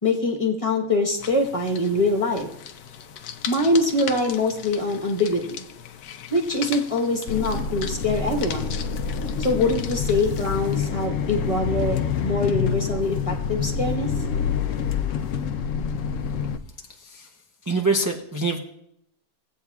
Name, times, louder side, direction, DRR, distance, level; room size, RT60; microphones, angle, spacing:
voice 1, 0.0-2.5 3.5-5.6 6.3-8.8 9.4-14.1, left 2 dB, 25° left, 1 dB, 1.1 m, -24 dB
sound 1, 1.2-10.9, left 8 dB, 85° left, 1.2 m, -39 dB
sound 2, 7.3-16.6, left 7 dB, 65° left, 0.9 m, -27 dB
voice 2, 17.7-18.6, right 3 dB, 25° right, 0 dB, 0.4 m, -24 dB
17.0 x 8.5 x 2.4 m, 0.76 s
omnidirectional pair, 1.6 m